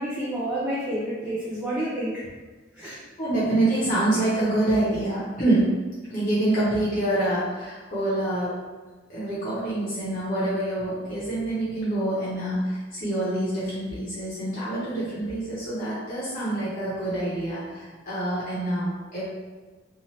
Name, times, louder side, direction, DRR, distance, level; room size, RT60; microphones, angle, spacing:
voice 1, 0.0-2.2 2.7-3.0, right 1 dB, 5° right, -8 dB, 0.4 m, -29 dB
voice 2, 3.2-5.7 6.1-8.5 9.1-19.2, right 1 dB, 40° left, -9 dB, 0.8 m, -26 dB
2.8 x 2.4 x 3.0 m, 1.3 s
head